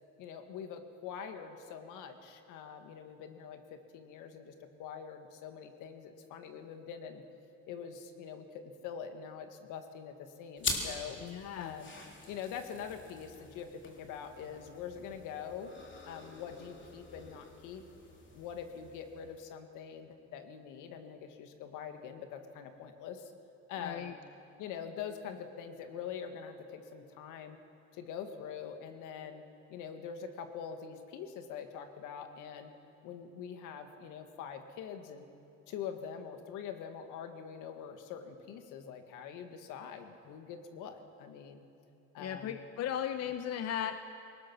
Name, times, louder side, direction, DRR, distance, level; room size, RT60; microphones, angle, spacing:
voice 1, 0.2-4.5 4.8-7.2 7.7-11.2 11.5-11.9 12.3-15.7 16.0-17.8 18.3-23.3 23.7-24.1 24.6-27.6 27.9-29.4 29.7-32.7 33.0-35.3 35.7-41.7 42.1-42.6, left 7 dB, 80° left, 6 dB, 1.9 m, -44 dB
sound 1, 10.6-19.6, left 3 dB, 40° left, 3.6 m, -44 dB
voice 2, 11.2-11.7 23.8-24.1 42.2-44.0, left 10 dB, 55° left, 9 dB, 0.9 m, -36 dB
22.0 x 19.0 x 6.2 m, 2.7 s
cardioid pair, 100°, 31 cm